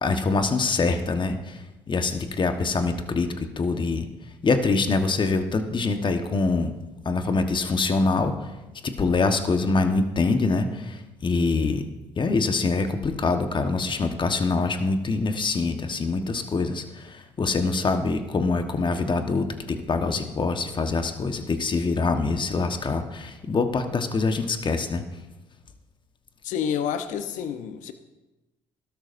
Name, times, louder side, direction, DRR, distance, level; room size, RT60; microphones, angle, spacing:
voice 1, 0.0-4.1 4.4-6.7 7.0-8.5 8.8-11.8 12.2-25.0, left 3 dB, 35° left, 7 dB, 1.3 m, -24 dB
voice 2, 26.4-27.9, left 8 dB, 70° left, 9 dB, 0.9 m, -29 dB
16.5 x 12.5 x 2.7 m, 1.1 s
hypercardioid pair, 60°, 13 cm